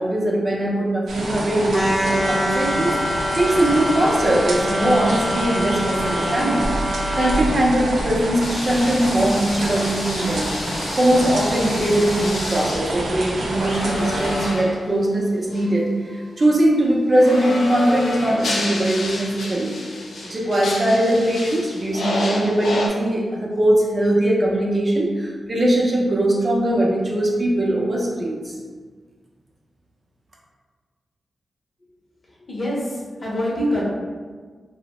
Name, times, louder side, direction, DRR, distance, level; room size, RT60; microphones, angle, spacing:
voice 1, 0.0-28.6, right 1 dB, 30° right, -3 dB, 0.5 m, -21 dB
sound 1, 1.1-14.5, right 1 dB, 75° right, 0.5 m, -27 dB
sound 2, 1.7-7.5, equal, 5° left, 0.7 m, -25 dB
sound 3, 8.4-15.0 15.5-15.7 17.1-22.9, left 2 dB, 90° left, 0.4 m, -30 dB
voice 2, 32.5-33.8, equal, 35° left, -5 dB, 0.7 m, -25 dB
2.8 x 2.0 x 2.9 m, 1.5 s
wide cardioid pair, 135°, 0 cm